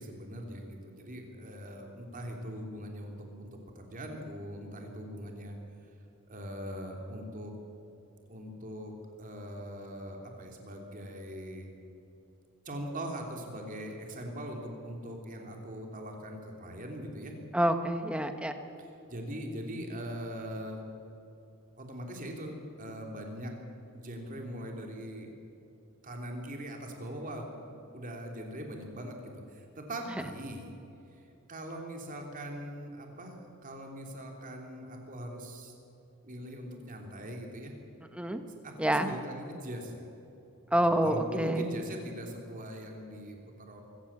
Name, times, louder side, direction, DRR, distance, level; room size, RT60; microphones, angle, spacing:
voice 1, 0.0-5.6 6.3-7.5 8.3-8.9 9.2-11.7 12.6-17.3 18.8-20.9 21.8-23.5 23.9-25.3 26.0-30.7 31.5-35.7 36.2-37.7 38.6-40.1 40.6-43.8, equal, 35° right, 2 dB, 3.1 m, -41 dB
voice 2, 17.5-18.5 38.1-38.4 38.8-39.1 40.7-41.6, right 1 dB, 5° right, 7 dB, 1.2 m, -27 dB
23.5 x 15.5 x 7.3 m, 2.9 s
head